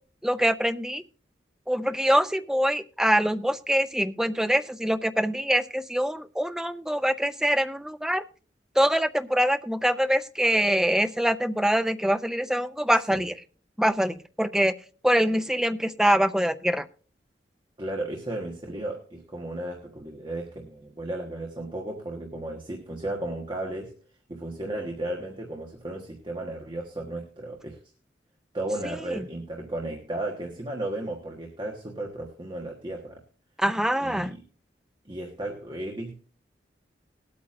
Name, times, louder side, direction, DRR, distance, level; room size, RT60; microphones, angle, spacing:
voice 1, 0.2-1.0 1.7-8.2 8.8-13.3 13.8-14.7 15.0-16.8 33.6-34.3, equal, 5° right, 10 dB, 0.4 m, -24 dB
voice 2, 12.9-13.2 17.8-23.9 24.3-27.8 28.5-33.2 34.0-34.4 35.0-36.1, right 1 dB, 25° right, 1 dB, 1.3 m, -34 dB
20.0 x 8.6 x 2.5 m, 0.41 s
head